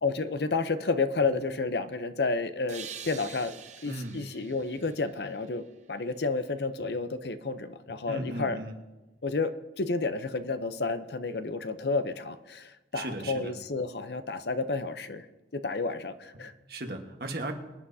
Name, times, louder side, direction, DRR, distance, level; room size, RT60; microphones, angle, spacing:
voice 1, 0.0-3.5 3.8-5.6 5.9-8.6 9.2-9.5 9.8-15.2 15.5-16.5, left 3 dB, 70° left, 11 dB, 0.7 m, -31 dB
sound 1, 2.7-6.2, right 8 dB, 40° right, 0.7 m, -46 dB
voice 2, 3.9-4.2 8.1-8.7 12.9-13.5 16.7-17.5, right 2 dB, 60° right, 3 dB, 1.4 m, -36 dB
24.5 x 10.0 x 2.8 m, 1.1 s
head